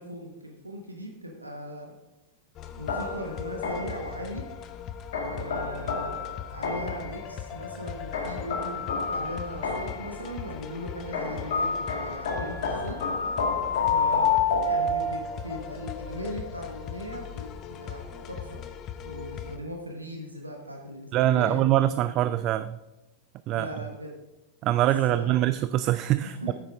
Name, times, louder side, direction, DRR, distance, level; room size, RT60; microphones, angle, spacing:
voice 1, 0.0-1.9 2.8-4.4 5.2-13.0 13.8-18.6 19.0-21.8 23.5-24.1 24.8-25.4 26.2-26.5, equal, 90° right, 1 dB, 1.1 m, -39 dB
sound 1, 2.5-19.6, left 8 dB, 35° left, 0.7 m, -40 dB
sound 2, 2.9-4.1 5.1-7.1 8.1-10.1 11.1-15.4, left 4 dB, 60° left, 1.9 m, -28 dB
voice 2, 21.1-22.8 23.5-23.7 24.6-26.5, right 13 dB, 40° right, 14 dB, 0.3 m, -24 dB
9.9 x 8.4 x 3.5 m, 1.0 s
figure-of-eight pair, 90°, 0 cm